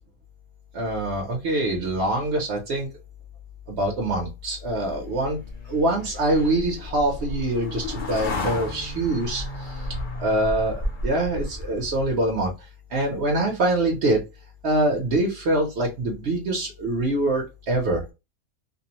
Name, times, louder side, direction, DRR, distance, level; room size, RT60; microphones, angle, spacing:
voice 1, 0.7-2.9 3.7-5.4 5.7-9.9 10.2-10.8 11.0-14.2 14.6-18.0, right 1 dB, 55° right, 0 dB, 0.8 m, -24 dB
sound 1, 4.9-12.3, left 2 dB, 55° left, 0.6 m, -33 dB
2.6 x 2.0 x 2.8 m, 0.25 s
omnidirectional pair, 1.5 m